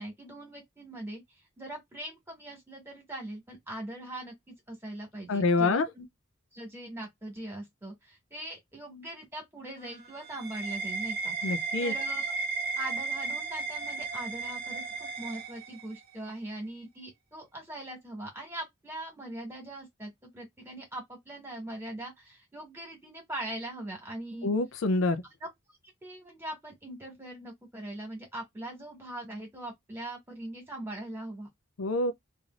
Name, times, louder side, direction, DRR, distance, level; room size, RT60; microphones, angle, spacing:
voice 1, 0.0-6.0 6.5-12.3 12.8-24.5 25.4-25.5 26.0-31.5, right 1 dB, 10° right, 1.6 m, -41 dB
voice 2, 5.3-5.9 11.4-11.9 24.4-25.2 31.8-32.1, left 3 dB, 75° left, 0.5 m, -26 dB
sound 1, 9.7-16.1, right 4 dB, 45° right, 0.9 m, -35 dB
3.3 x 2.6 x 2.3 m
head